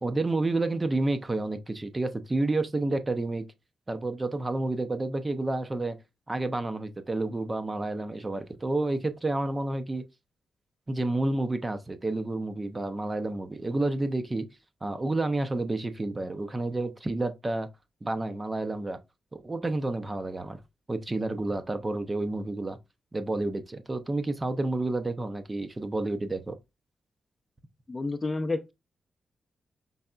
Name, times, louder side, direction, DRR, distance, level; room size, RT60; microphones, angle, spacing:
voice 1, 0.0-3.4 3.9-6.0 6.3-10.0 10.9-14.5 14.8-17.7 18.0-19.0 19.3-20.6 20.9-22.8 23.1-26.5, right 2 dB, 25° right, 0.6 m, -30 dB
voice 2, 27.9-28.7, left 3 dB, 25° left, 0.5 m, -30 dB
5.5 x 3.4 x 2.4 m
cardioid pair, 90°, 0 cm